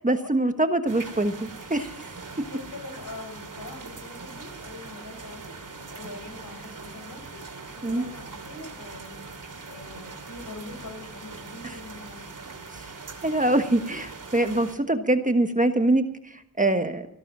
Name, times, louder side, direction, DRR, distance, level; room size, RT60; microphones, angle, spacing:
voice 1, 0.0-1.9 7.8-8.1 11.6-11.8 13.2-17.1, right 2 dB, 20° right, 8 dB, 1.3 m, -24 dB
sound 1, 0.9-14.8, right 4 dB, 65° right, 2.7 m, -41 dB
voice 2, 2.5-7.4 7.8-9.3 9.6-12.3, left 2 dB, 65° left, 6 dB, 5.1 m, -43 dB
14.5 x 13.0 x 6.1 m, 0.83 s
cardioid pair, 50°, 34 cm